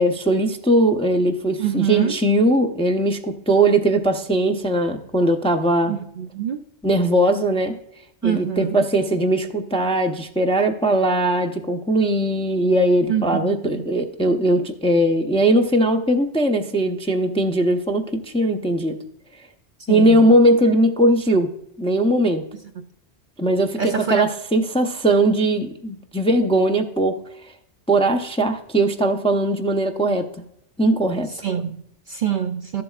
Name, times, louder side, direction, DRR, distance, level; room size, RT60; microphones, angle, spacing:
voice 1, 0.0-5.9 6.8-7.8 8.2-19.0 19.9-21.5 21.8-22.4 23.4-27.1 27.9-30.3 30.8-31.3, right 1 dB, 5° left, 0.5 m, -19 dB
voice 2, 1.6-2.2 5.9-6.6 8.2-8.8 13.1-13.8 19.9-20.4 23.7-24.3 31.3-32.8, right 9 dB, 55° right, 0.6 m, -25 dB
13.5 x 7.6 x 2.4 m
omnidirectional pair, 1.2 m